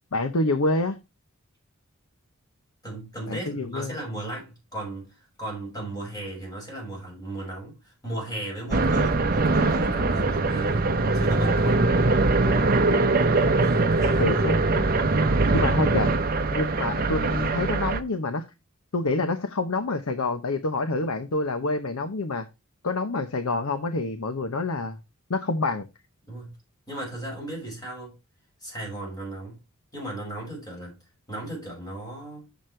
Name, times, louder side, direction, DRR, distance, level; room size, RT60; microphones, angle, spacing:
voice 1, 0.1-1.0 3.3-3.9 14.2-15.0 15.5-16.1 16.5-18.5 18.9-22.5 22.8-25.0 25.3-25.9, left 2 dB, 80° left, 0.8 m, -27 dB
voice 2, 2.8-10.9 11.1-11.9 13.6-14.4 26.3-26.6 26.9-28.1 28.6-29.6 29.9-31.0 31.3-32.5, right 1 dB, 15° left, 6.3 m, -36 dB
sound 1, 8.7-18.0, right 3 dB, 40° right, 0.7 m, -22 dB
9.0 x 7.2 x 3.2 m
head